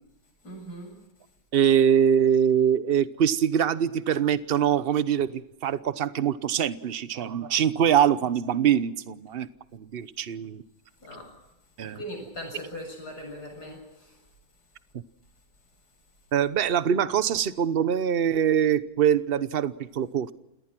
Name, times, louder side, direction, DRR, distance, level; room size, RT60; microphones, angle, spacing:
voice 1, 0.4-0.9 11.0-11.3 11.9-14.2, equal, 85° left, 3 dB, 7.9 m, -40 dB
voice 2, 1.5-10.6 11.8-12.0 14.9-15.0 16.3-20.3, right 9 dB, 45° right, 15 dB, 0.9 m, -23 dB
28.5 x 19.0 x 6.1 m, 0.89 s
omnidirectional pair, 1.7 m